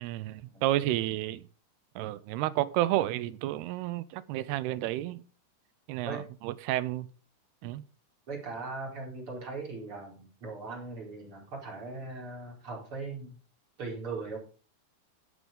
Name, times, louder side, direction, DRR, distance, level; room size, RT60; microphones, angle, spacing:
voice 1, 0.0-1.4 2.0-5.2 5.9-7.1 7.6-7.8, right 15 dB, 85° right, 2.7 m, -31 dB
voice 2, 8.3-13.4 13.8-14.4, right 3 dB, 30° right, 5.2 m, -39 dB
16.5 x 6.4 x 5.2 m
omnidirectional pair, 4.7 m